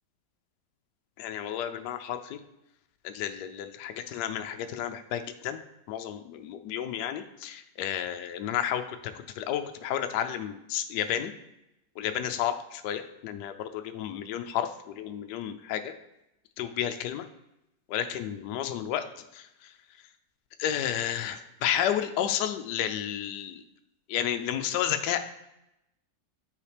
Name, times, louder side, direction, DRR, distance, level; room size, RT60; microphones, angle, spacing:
voice 1, 1.2-2.4 3.0-5.6 5.9-11.3 12.0-15.9 16.6-17.2 17.9-19.0 19.3-19.7 20.6-23.6 24.1-25.2, left 10 dB, 75° left, 8 dB, 1.1 m, -31 dB
8.6 x 4.2 x 3.3 m, 0.87 s
omnidirectional pair, 2.0 m